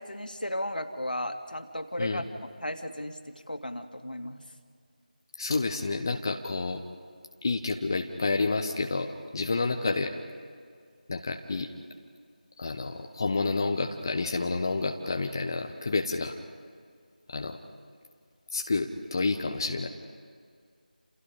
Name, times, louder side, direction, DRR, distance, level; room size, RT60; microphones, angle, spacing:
voice 1, 0.0-2.2 2.6-4.4, left 1 dB, 75° left, 6 dB, 2.4 m, -35 dB
voice 2, 5.4-6.8 7.4-10.1 11.1-11.7 12.6-16.3 17.3-17.6 18.5-19.9, left 3 dB, 25° left, 5 dB, 1.0 m, -29 dB
29.0 x 28.0 x 5.1 m, 2.1 s
figure-of-eight pair, 165°, 5 cm